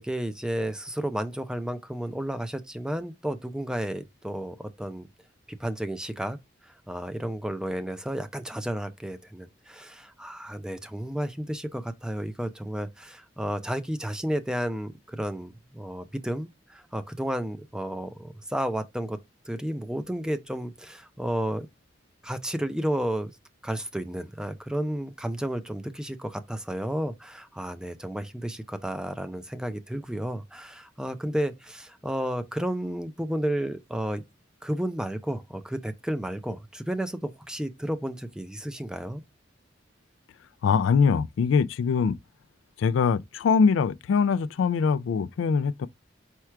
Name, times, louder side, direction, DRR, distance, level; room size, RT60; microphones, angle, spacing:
voice 1, 0.0-5.1 5.6-6.4 6.6-19.2 19.5-21.7 22.2-23.3 23.6-34.2 34.6-39.2, right 1 dB, 5° right, 0.5 m, -32 dB
voice 2, 40.6-42.2 42.8-45.9, left 5 dB, 85° left, 0.3 m, -23 dB
4.5 x 2.3 x 4.4 m
head